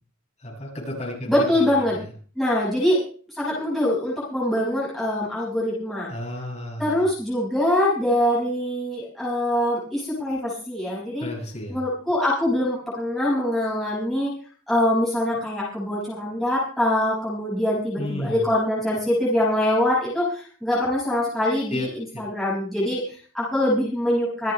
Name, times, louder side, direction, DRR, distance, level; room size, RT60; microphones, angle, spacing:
voice 1, 0.4-2.1 6.1-7.1 11.2-11.8 18.0-18.5 21.7-22.2, left 1 dB, 30° left, -4 dB, 8.0 m, -33 dB
voice 2, 1.3-2.0 2.3-3.0 3.3-6.1 6.8-11.3 11.7-14.3 14.7-24.5, left 1 dB, ahead, -9 dB, 6.4 m, -24 dB
27.5 x 9.3 x 3.4 m, 0.41 s
head